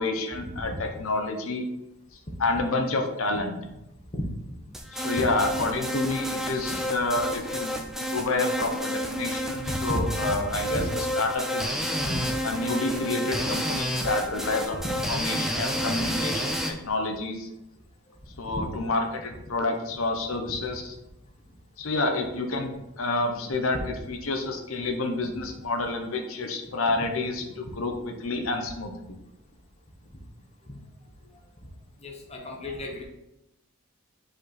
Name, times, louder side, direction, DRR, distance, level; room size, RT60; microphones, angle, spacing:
voice 1, 0.0-1.7 2.4-3.6 4.9-11.8 12.4-14.8 15.1-17.5 18.4-20.9 21.8-29.2, left 2 dB, 70° left, 4 dB, 0.8 m, -29 dB
sound 1, 4.7-16.7, equal, ahead, 0.4 m, -30 dB
voice 2, 9.9-10.9 12.1-12.2 13.3-13.4 14.7-14.9 15.7-16.1 18.4-18.8 23.7-23.8 27.0-27.1 30.6-30.8 32.0-33.0, equal, 30° left, 0 dB, 1.0 m, -33 dB
5.2 x 4.4 x 4.1 m, 0.89 s
head